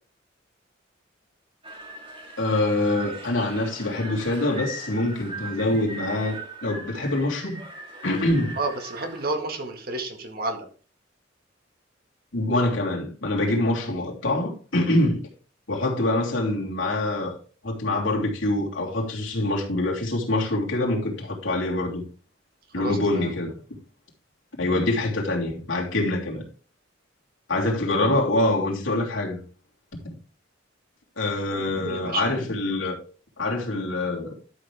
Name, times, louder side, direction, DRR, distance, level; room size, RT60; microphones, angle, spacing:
sound 1, 1.6-9.3, right 2 dB, 30° right, 3.1 m, -40 dB
voice 1, 2.4-7.6 8.0-8.6 12.3-15.2 15.7-17.4 17.6-22.0 22.7-23.6 24.6-26.4 27.5-29.4 30.0-30.2 31.2-33.0 33.4-34.3, left 2 dB, 90° left, 3.1 m, -25 dB
voice 2, 8.6-10.7 22.8-23.3 31.5-32.2, right 2 dB, 50° right, 1.9 m, -31 dB
12.0 x 6.6 x 3.5 m
head